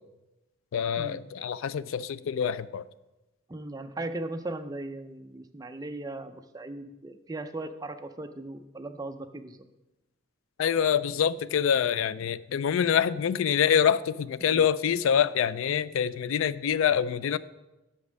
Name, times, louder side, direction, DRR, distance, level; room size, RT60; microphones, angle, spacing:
voice 1, 0.7-2.9 10.6-17.4, left 8 dB, 80° left, 17 dB, 0.3 m, -25 dB
voice 2, 3.5-9.6 14.5-14.6, right 2 dB, 20° right, 8 dB, 0.4 m, -38 dB
7.1 x 5.2 x 6.3 m, 1.0 s
head